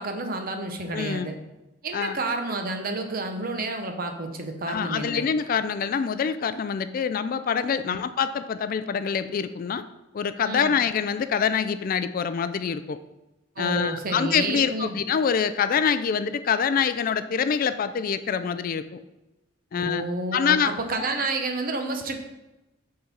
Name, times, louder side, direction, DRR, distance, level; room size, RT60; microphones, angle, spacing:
voice 1, 0.0-1.3 1.8-5.2 7.8-8.0 10.4-10.7 13.6-15.0 19.7-22.3, right 2 dB, 50° right, 5 dB, 0.9 m, -30 dB
voice 2, 0.9-1.3 1.9-2.2 4.7-9.8 10.1-13.0 13.6-19.0 19.7-20.1 20.3-20.7, left 7 dB, 45° left, 12 dB, 0.3 m, -25 dB
7.1 x 3.8 x 5.3 m, 1.0 s
head